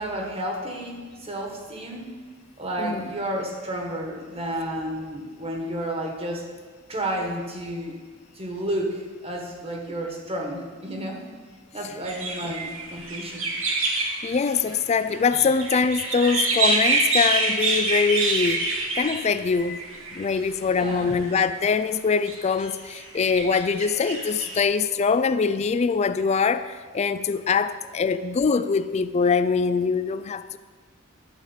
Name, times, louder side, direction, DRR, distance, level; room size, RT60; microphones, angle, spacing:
voice 1, 0.0-2.1 2.6-6.4 6.9-8.0 8.3-11.2 11.7-13.5 20.7-21.2, right 1 dB, 30° right, 1.5 m, -31 dB
sound 1, 12.0-20.4 21.1-21.7 22.3-24.6, right 3 dB, 70° right, 1.6 m, -26 dB
voice 2, 14.2-19.8 20.1-30.6, left 5 dB, 30° left, 0.3 m, -23 dB
12.0 x 4.8 x 8.1 m
head